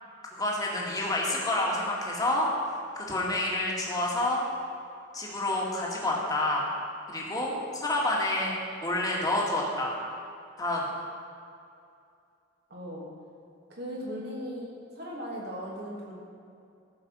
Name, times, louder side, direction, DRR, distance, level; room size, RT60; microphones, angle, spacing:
voice 1, 0.3-4.5 5.1-6.6 7.1-8.5 8.8-9.9 10.6-10.8, left 1 dB, 20° left, -3 dB, 2.1 m, -28 dB
voice 2, 12.7-13.0 13.7-14.7 14.9-16.1, equal, 55° right, -4 dB, 2.8 m, -37 dB
14.5 x 6.6 x 6.3 m, 2.5 s
head